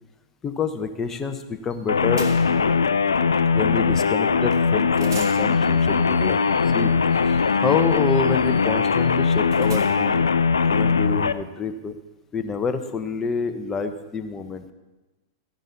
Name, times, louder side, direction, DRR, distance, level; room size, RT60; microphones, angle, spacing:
voice 1, 0.4-2.8 3.5-6.4 6.7-6.9 7.2-10.2 10.7-12.0 12.3-14.7, left 5 dB, 20° left, 7 dB, 1.0 m, -28 dB
sound 1, 1.7-1.8 2.2-2.7 4.5-4.6 4.9-10.2, right 4 dB, 80° right, 1.8 m, -44 dB
sound 2, 1.9-11.3, left 5 dB, 90° left, 0.4 m, -20 dB
14.0 x 10.5 x 4.1 m, 1.1 s
hypercardioid pair, 105°, 2 cm